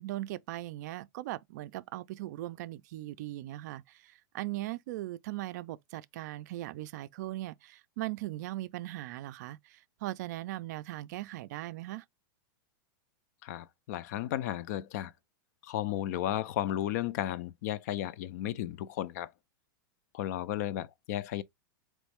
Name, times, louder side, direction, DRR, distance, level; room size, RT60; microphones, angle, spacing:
voice 1, 0.0-12.0, right 16 dB, 55° right, 0.4 m, -39 dB
voice 2, 13.4-15.1 15.6-19.3 20.1-21.4, left 12 dB, 50° left, 0.4 m, -34 dB
4.1 x 3.1 x 3.5 m
supercardioid pair, 155°, 11 cm